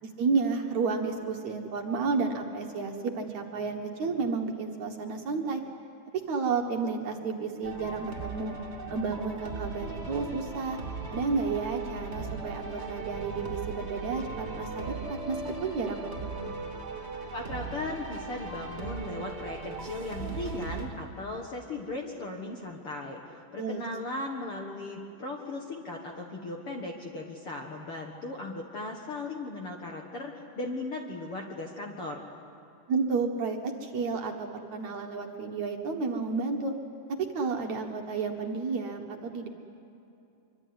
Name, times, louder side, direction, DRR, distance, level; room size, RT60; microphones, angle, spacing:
voice 1, 0.0-5.6 6.3-8.5 8.9-10.8 11.1-16.4 23.6-23.8 32.9-36.7 37.1-39.5, right 4 dB, 55° right, 3 dB, 2.4 m, -31 dB
sound 1, 7.6-20.9, right 3 dB, 20° right, 2.7 m, -38 dB
voice 2, 17.3-23.2 23.5-32.2, left 2 dB, 50° left, 1 dB, 1.8 m, -37 dB
25.0 x 24.5 x 9.7 m, 2.8 s
omnidirectional pair, 4.4 m